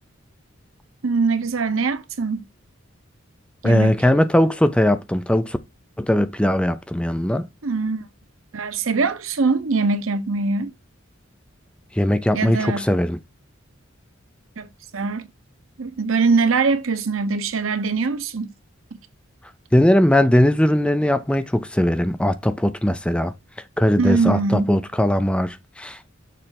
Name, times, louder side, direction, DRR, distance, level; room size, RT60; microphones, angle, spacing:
voice 1, 1.0-2.4 3.6-4.0 7.6-8.1 8.5-10.7 12.3-12.9 14.6-14.7 14.9-15.3 15.8-18.5 24.0-24.8, right 4 dB, 90° right, 0.9 m, -22 dB
voice 2, 3.6-5.6 6.0-7.4 12.0-13.2 19.7-23.3 23.8-26.0, left 1 dB, 5° left, 0.5 m, -19 dB
6.6 x 3.3 x 5.8 m
head